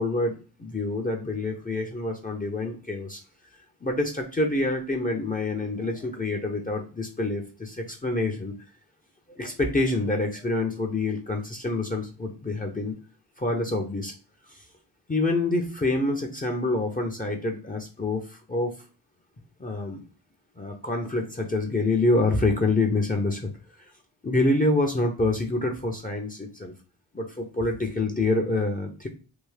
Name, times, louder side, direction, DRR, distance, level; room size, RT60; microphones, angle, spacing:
voice 1, 0.0-3.2 3.8-8.5 9.3-12.9 13.4-14.1 14.5-14.7 15.1-18.8 19.6-20.0 20.6-23.8 24.2-26.7 27.1-29.1, left 2 dB, 20° left, 3 dB, 0.7 m, -27 dB
3.5 x 2.4 x 3.3 m, 0.35 s
cardioid pair, 55°, 44 cm